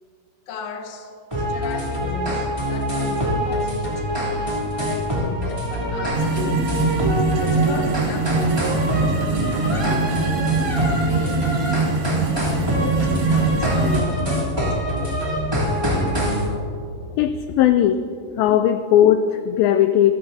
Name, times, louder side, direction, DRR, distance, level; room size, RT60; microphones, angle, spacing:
voice 1, 0.5-6.8 7.4-8.9 9.7-11.5 12.3-14.8, left 4 dB, 60° left, 3 dB, 1.8 m, -35 dB
sound 1, 1.3-16.5, equal, 10° right, 2.4 m, -24 dB
sound 2, 6.1-14.0, right 3 dB, 80° right, 3.4 m, -23 dB
voice 2, 17.2-18.0 18.4-20.2, left 10 dB, 85° left, 9 dB, 2.1 m, -17 dB
26.5 x 14.5 x 2.7 m, 2.6 s
omnidirectional pair, 4.6 m